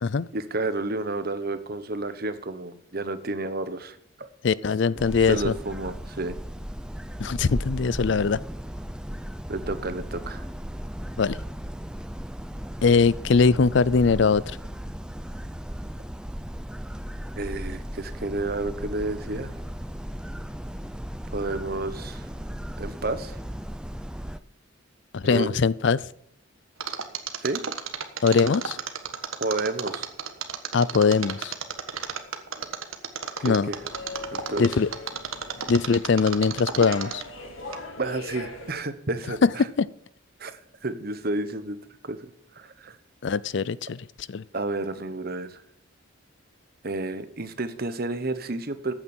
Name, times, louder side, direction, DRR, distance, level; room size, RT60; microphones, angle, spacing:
voice 1, 0.3-4.3 4.9-6.4 9.5-10.5 17.4-19.5 21.3-22.3 22.8-23.4 25.2-25.6 27.4-27.6 29.4-30.1 33.4-33.8 34.3-34.7 38.0-39.7 40.4-41.8 42.0-42.3 42.5-42.9 44.5-45.6 46.8-48.9, right 2 dB, 50° right, 11 dB, 1.2 m, -31 dB
voice 2, 4.4-5.5 7.2-8.4 11.2-11.4 12.8-14.4 25.1-26.0 28.2-28.8 30.7-31.5 33.4-33.7 34.6-34.9 35.7-37.2 39.4-39.5 39.8-39.9 43.2-44.4, left 5 dB, 60° left, 20 dB, 0.4 m, -21 dB
sound 1, 5.0-24.4, equal, 5° right, 0.5 m, -36 dB
Mechanisms, 26.8-37.4 37.7-37.8, right 7 dB, 90° right, 1.5 m, -32 dB
sound 2, 33.6-38.7, left 2 dB, 80° left, 3.3 m, -41 dB
14.5 x 9.0 x 4.5 m, 0.69 s
head